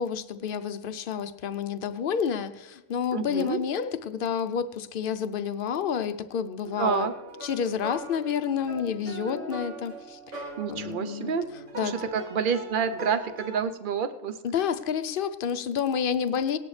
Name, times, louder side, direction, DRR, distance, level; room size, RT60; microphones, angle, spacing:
voice 1, 0.0-7.1 7.4-11.3 11.8-12.0 14.4-16.6, left 7 dB, 55° left, 11 dB, 0.7 m, -29 dB
voice 2, 3.1-3.6 6.8-7.1 10.6-11.5 11.8-14.4, right 6 dB, 50° right, 10 dB, 0.7 m, -28 dB
sound 1, 6.6-13.6, right 1 dB, 75° right, 3.0 m, -40 dB
18.0 x 11.0 x 3.2 m, 1.0 s
omnidirectional pair, 1.3 m